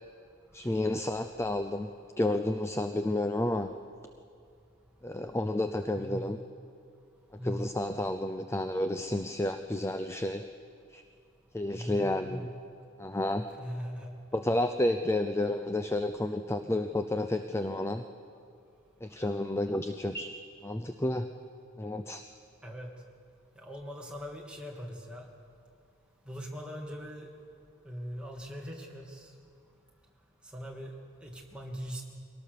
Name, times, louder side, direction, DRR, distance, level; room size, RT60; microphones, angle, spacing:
voice 1, 0.5-1.9 2.2-3.7 5.0-6.4 7.4-10.4 10.9-11.0 11.5-12.5 13.0-13.5 14.3-18.0 19.0-20.3 20.6-21.3 21.8-22.2, left 1 dB, 15° left, 8 dB, 0.5 m, -31 dB
voice 2, 5.9-6.3 7.4-7.7 11.7-12.5 13.6-14.1 22.6-22.9 23.6-25.3 26.3-27.3 27.8-29.3 30.5-30.9 31.2-32.0, equal, 5° right, -1 dB, 2.4 m, -40 dB
23.0 x 18.0 x 6.7 m, 2.4 s
head